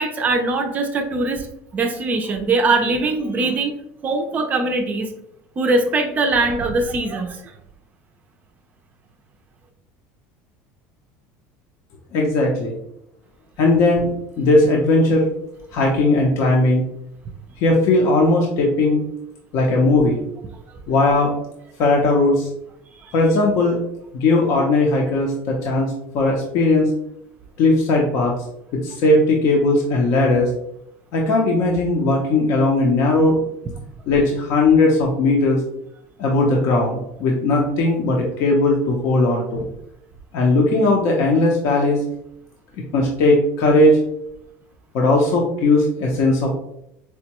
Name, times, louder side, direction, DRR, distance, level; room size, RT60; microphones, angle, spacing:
voice 1, 0.0-1.5 1.7-3.7 4.0-5.1 5.6-7.4 23.0-23.1, right 3 dB, 25° right, 4 dB, 0.4 m, -21 dB
voice 2, 12.1-12.7 13.6-14.1 14.4-15.3 15.7-16.8 17.6-19.0 19.5-20.2 20.9-21.3 21.8-22.5 23.1-23.8 24.1-26.9 27.6-28.3 28.8-30.5 31.1-33.4 34.1-35.6 36.2-39.6 40.3-42.0 42.9-44.0 44.9-46.5, left 2 dB, 55° left, -1 dB, 0.6 m, -18 dB
4.4 x 2.1 x 2.9 m, 0.78 s
cardioid pair, 150°, 6 cm